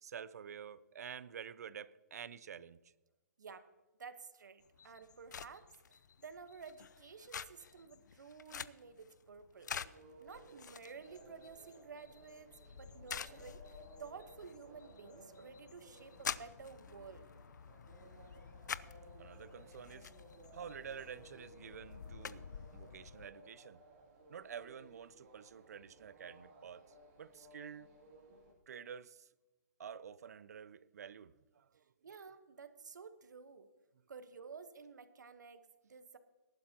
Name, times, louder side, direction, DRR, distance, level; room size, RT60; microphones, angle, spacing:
voice 1, 0.0-2.8 19.2-20.1 20.5-22.4 22.7-23.8 24.3-26.8 27.2-27.9 28.7-29.3 29.8-31.7, right 8 dB, 60° right, 0.6 m, -49 dB
voice 2, 4.0-9.8 10.2-17.2 32.0-33.7 34.1-36.2, right 5 dB, 85° right, 1.2 m, -53 dB
sound 1, 4.6-23.3, left 7 dB, 80° left, 0.5 m, -49 dB
sound 2, 9.7-28.5, right 2 dB, 40° right, 4.1 m, -60 dB
18.5 x 11.5 x 2.9 m
hypercardioid pair, 165°, 10 cm